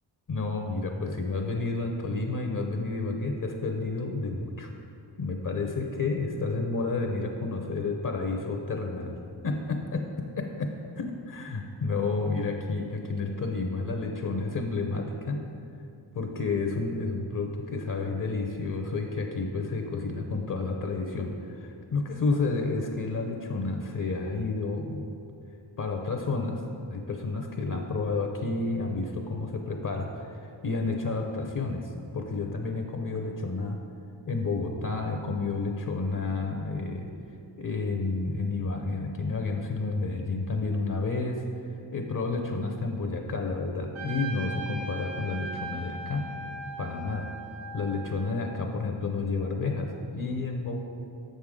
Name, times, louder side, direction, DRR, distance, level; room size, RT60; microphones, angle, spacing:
voice 1, 0.3-4.7 5.2-9.2 9.4-10.1 10.4-15.4 16.1-25.1 25.8-26.6 26.9-33.8 34.3-37.1 37.6-41.4 41.9-46.3 46.8-47.3 47.7-50.8, left 3 dB, 45° left, 4 dB, 0.6 m, -30 dB
Trumpet, 43.9-48.7, right 2 dB, 80° right, 1.0 m, -39 dB
6.9 x 6.5 x 3.6 m, 2.5 s
cardioid pair, 80°, 46 cm